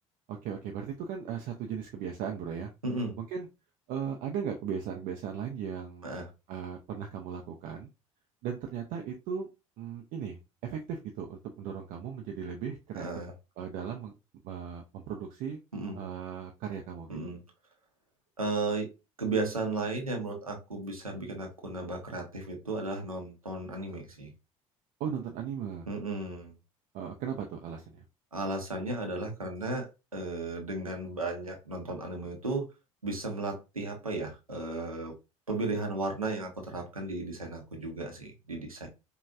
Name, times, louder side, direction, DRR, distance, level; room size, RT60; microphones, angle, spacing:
voice 1, 0.3-2.7 3.2-3.5 3.9-6.1 6.5-7.9 8.4-9.5 9.8-13.1 13.6-14.1 14.4-15.6 16.0-17.2 25.0-25.9 26.9-28.0, right 7 dB, 50° right, 3 dB, 0.6 m, -37 dB
voice 2, 2.8-3.1 6.0-6.3 12.9-13.3 15.7-16.0 17.1-17.4 18.4-18.9 19.2-24.3 25.9-26.5 28.3-32.6 33.0-35.1 35.5-38.9, right 2 dB, 90° right, 2 dB, 0.8 m, -34 dB
5.1 x 2.3 x 2.5 m, 0.27 s
figure-of-eight pair, 60°, 17 cm